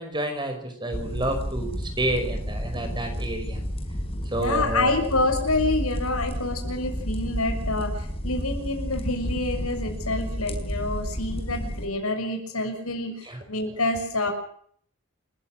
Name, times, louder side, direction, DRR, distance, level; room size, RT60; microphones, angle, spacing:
voice 1, 0.0-3.6 4.3-4.9 13.2-13.4, right 1 dB, 20° right, 6 dB, 5.4 m, -29 dB
sound 1, 0.9-11.9, equal, 25° left, 4.5 m, -31 dB
voice 2, 4.4-14.3, left 2 dB, 85° left, 5 dB, 6.5 m, -27 dB
29.0 x 16.0 x 6.4 m, 0.63 s
head